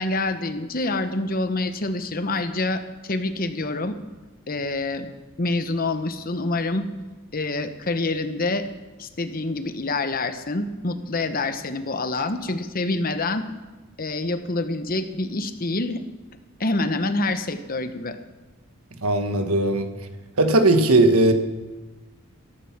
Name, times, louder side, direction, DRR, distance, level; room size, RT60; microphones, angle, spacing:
voice 1, 0.0-4.0 4.5-5.1 5.4-6.9 7.3-8.6 9.0-13.4 14.0-16.0 16.6-18.2, left 2 dB, 40° left, 9 dB, 1.0 m, -26 dB
voice 2, 19.0-19.9 20.4-21.3, right 2 dB, 80° right, 7 dB, 1.5 m, -18 dB
14.5 x 13.0 x 6.0 m, 1.2 s
head